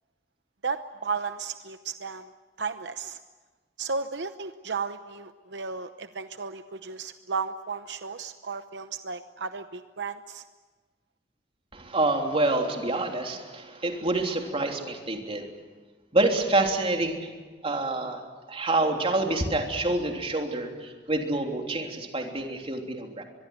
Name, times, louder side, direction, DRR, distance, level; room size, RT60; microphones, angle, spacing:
voice 1, 0.6-2.3 2.6-3.2 3.8-10.4, right 5 dB, 80° right, 10 dB, 0.9 m, -34 dB
voice 2, 11.7-15.5 16.1-17.3 17.6-18.2 18.5-23.2, right 2 dB, 35° right, 3 dB, 3.4 m, -27 dB
24.0 x 22.5 x 9.5 m, 1.3 s
head